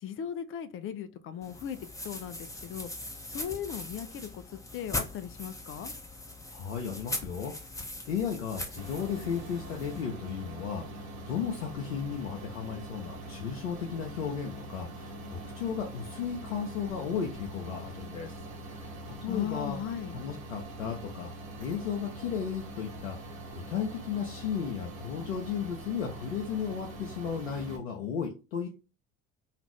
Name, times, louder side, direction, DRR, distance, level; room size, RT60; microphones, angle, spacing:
voice 1, 0.0-2.9 3.3-5.9 19.3-20.2, left 9 dB, 35° left, 0.4 m, -38 dB
sound 1, 1.4-10.0, left 1 dB, 10° left, 0.7 m, -40 dB
voice 2, 6.5-18.5 18.7-19.8 20.1-21.3 21.6-28.7, left 7 dB, 80° left, 0.6 m, -35 dB
sound 2, 8.8-27.8, right 1 dB, 85° right, 0.8 m, -43 dB
2.4 x 2.4 x 3.2 m
figure-of-eight pair, 55°, 40 cm